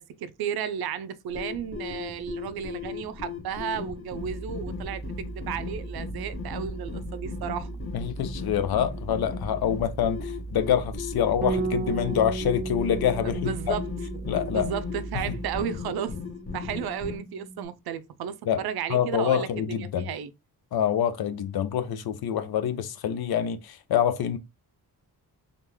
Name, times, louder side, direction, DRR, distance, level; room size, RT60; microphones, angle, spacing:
voice 1, 0.0-7.7 13.2-13.8 14.2-16.2 16.5-20.3, right 8 dB, 75° right, 0.5 m, -33 dB
sound 1, 1.3-17.2, left 6 dB, 35° left, 1.0 m, -38 dB
sound 2, 4.2-15.6, right 3 dB, 15° left, 0.7 m, -38 dB
voice 2, 7.9-13.8 14.3-14.7 15.1-15.2 18.5-18.6 18.9-20.1 20.7-24.4, left 9 dB, 70° left, 0.6 m, -26 dB
Bass guitar, 11.4-17.7, right 3 dB, 30° right, 0.5 m, -36 dB
3.6 x 2.5 x 3.0 m
cardioid pair, 115°, 38 cm